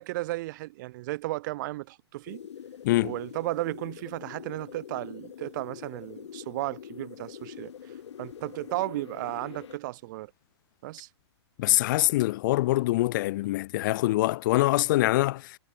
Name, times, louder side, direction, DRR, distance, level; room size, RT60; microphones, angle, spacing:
voice 1, 0.0-2.4 3.0-10.3 10.8-11.1, right 19 dB, 45° right, 0.5 m, -34 dB
sound 1, 2.3-9.8, left 8 dB, 80° left, 0.8 m, -44 dB
voice 2, 11.6-15.6, left 17 dB, 45° left, 0.4 m, -24 dB
hypercardioid pair, 130°, 14 cm